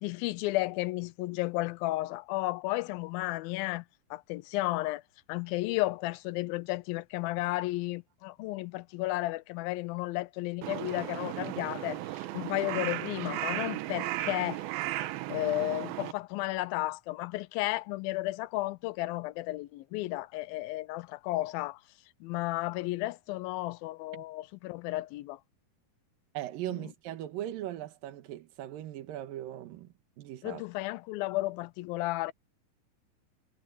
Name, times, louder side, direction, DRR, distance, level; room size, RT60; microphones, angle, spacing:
voice 1, 0.0-3.9 4.1-5.0 5.3-14.7 15.3-21.8 22.2-25.4 30.4-32.3, left 19 dB, 85° left, 2.4 m, -33 dB
Crow, 10.6-16.1, right 16 dB, 90° right, 2.7 m, -35 dB
voice 2, 26.3-30.6, right 13 dB, 75° right, 3.0 m, -39 dB
omnidirectional pair, 4.2 m